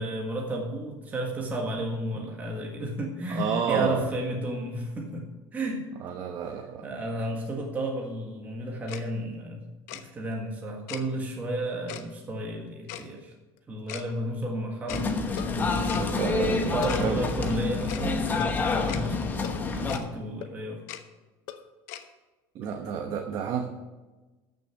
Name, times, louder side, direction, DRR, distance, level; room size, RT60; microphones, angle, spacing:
voice 1, 0.0-5.8 6.8-9.6 9.9-13.3 13.7-20.8, right 1 dB, 15° right, -1 dB, 1.7 m, -33 dB
voice 2, 3.3-4.1 6.0-6.9 15.9-17.2 22.5-23.6, right 7 dB, 45° right, 4 dB, 1.0 m, -30 dB
Tick-tock, 8.9-9.0 9.9-10.0 10.9-11.0 11.9-12.0 12.9-13.0 13.9-14.0 14.9-15.0 15.9-16.0 16.9-17.1 17.9-18.0 18.9-19.0 19.9-20.1 20.9-21.0 21.9-22.0, left 12 dB, 85° left, 1.0 m, -38 dB
sound 1, 13.3-13.6 13.9-14.0 14.1-14.2 15.3-15.8 16.8-17.6 18.4-18.7 19.4-19.7 20.4-20.6 21.5-21.8, left 8 dB, 50° left, 0.9 m, -42 dB
sound 2, 14.9-20.0, left 4 dB, 20° left, 1.1 m, -28 dB
13.5 x 6.7 x 6.0 m, 1.2 s
cardioid pair, 155°, 9 cm